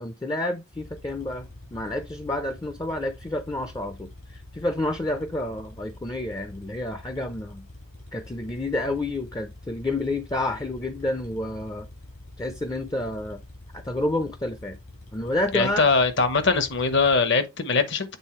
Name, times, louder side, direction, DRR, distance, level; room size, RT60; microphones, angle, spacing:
voice 1, 0.0-7.6 8.1-11.9 12.4-13.4 13.7-14.8 15.1-15.9, left 1 dB, 15° left, 0.4 m, -29 dB
sound 1, 0.7-17.2, left 1 dB, 80° left, 3.7 m, -46 dB
voice 2, 15.5-18.2, left 4 dB, 60° left, 1.0 m, -22 dB
8.1 x 3.8 x 3.0 m
head